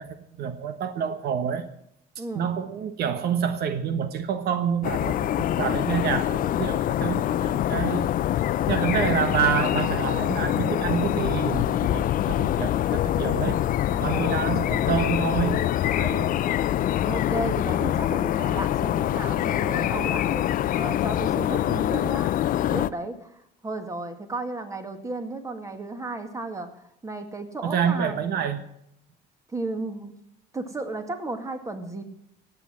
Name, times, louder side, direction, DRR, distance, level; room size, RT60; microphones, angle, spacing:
voice 1, 0.0-1.7 2.3-8.1 8.7-13.6 13.9-16.4 27.6-28.6, right 7 dB, 70° right, 10 dB, 1.3 m, -28 dB
voice 2, 2.2-2.5 14.1-14.4 17.0-22.3 22.6-28.2 29.5-30.1 30.5-32.0, right 2 dB, 20° right, 7 dB, 2.2 m, -34 dB
sound 1, 4.8-22.9, left 12 dB, 55° left, 0.5 m, -25 dB
17.5 x 8.4 x 7.5 m, 0.74 s
cardioid pair, 110°, 17 cm